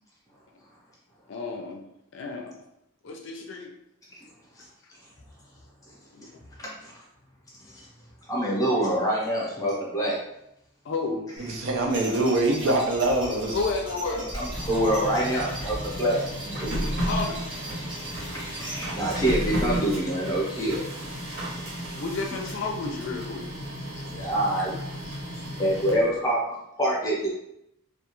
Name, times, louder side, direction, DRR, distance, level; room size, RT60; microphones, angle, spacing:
voice 1, 1.3-1.9 2.1-2.6 3.0-3.7 6.1-6.2 10.8-11.3 13.5-14.3 16.8-17.4 22.0-23.5 24.6-24.7, left 3 dB, 60° left, 2 dB, 0.4 m, -31 dB
voice 2, 6.6-6.9 7.7-7.8 8.3-10.2 14.3-16.8 18.2-20.8 24.1-24.7 25.6-26.4 26.8-27.3, right 1 dB, 15° left, -4 dB, 0.7 m, -26 dB
sound 1, 11.4-19.2, right 1 dB, 25° right, 0.6 m, -39 dB
voice 3, 11.5-13.6, right 2 dB, 65° right, 1 dB, 0.5 m, -24 dB
Printer, 14.2-26.2, equal, 50° right, 1.0 m, -34 dB
2.3 x 2.3 x 2.9 m, 0.81 s
head